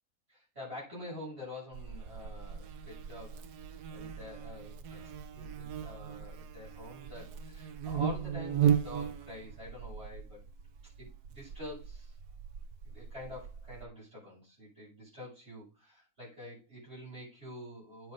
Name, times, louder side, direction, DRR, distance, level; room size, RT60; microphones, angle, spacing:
voice 1, 0.3-3.4 3.9-10.4 11.0-12.1 12.8-18.1, left 1 dB, 45° right, 7.5 m, -47 dB
Buzz, 1.7-13.8, right 8 dB, 85° right, 1.4 m, -36 dB
9.0 x 6.3 x 5.2 m
omnidirectional pair, 1.6 m